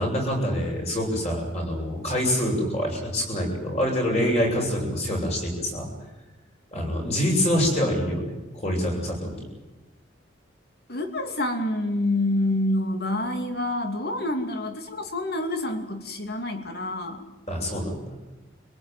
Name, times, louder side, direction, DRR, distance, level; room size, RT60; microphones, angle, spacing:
voice 1, 0.0-5.9 6.7-8.3 8.6-9.3 17.5-18.1, equal, 35° left, 0 dB, 7.5 m, -25 dB
voice 2, 10.9-17.2, left 1 dB, 55° left, 6 dB, 2.7 m, -27 dB
25.5 x 18.0 x 9.2 m, 1.1 s
head